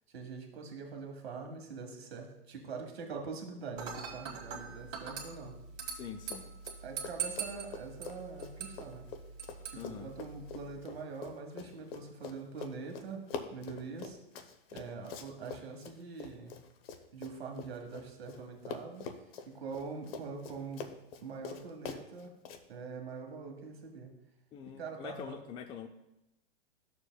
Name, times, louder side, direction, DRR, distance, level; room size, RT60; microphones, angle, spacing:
voice 1, 0.1-5.6 6.8-9.1 9.7-14.2 14.7-16.6 17.1-19.1 19.4-20.9 21.2-22.3 22.7-24.1 24.8-25.4, right 4 dB, 85° right, 2 dB, 1.7 m, -44 dB
Dishes pots and pans / Glass, 3.8-10.8, right 6 dB, 35° right, 1.7 m, -43 dB
voice 2, 5.9-6.5 9.7-10.1 24.5-25.9, left 8 dB, 15° left, 6 dB, 0.4 m, -44 dB
Run, 6.2-6.8 7.0-18.4 18.7-22.6, left 5 dB, 70° left, 0.9 m, -45 dB
12.5 x 6.9 x 2.3 m, 0.91 s
hypercardioid pair, 125°, 30 cm